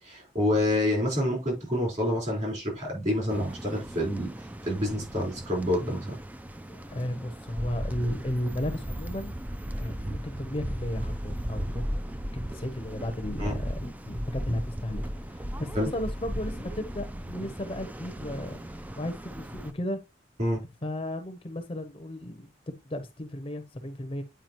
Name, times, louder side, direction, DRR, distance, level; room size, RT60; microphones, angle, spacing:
voice 1, 0.0-4.3 4.6-6.2 10.0-10.1 13.4-13.6 15.7-15.9 20.4-20.6, left 1 dB, 40° right, 4.2 m, -28 dB
sound 1, 3.3-19.7, equal, 10° right, 0.4 m, -36 dB
voice 2, 6.7-9.3 9.7-11.9 12.3-15.0 15.3-20.0 20.8-24.2, left 1 dB, 30° left, 0.7 m, -34 dB
9.1 x 4.9 x 2.9 m
head